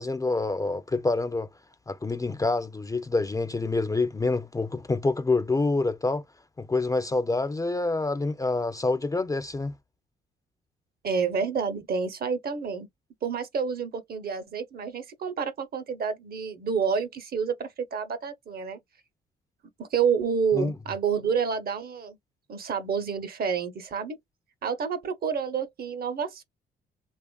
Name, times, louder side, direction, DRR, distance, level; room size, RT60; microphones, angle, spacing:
voice 1, 0.0-1.5 1.9-6.2 6.6-9.7 20.5-20.7, left 3 dB, 15° left, 0.4 m, -27 dB
voice 2, 11.0-12.9 13.2-18.8 19.8-22.2 22.5-24.2 24.6-26.4, right 6 dB, 50° right, 0.8 m, -29 dB
2.9 x 2.3 x 2.2 m
cardioid pair, 90°, 20 cm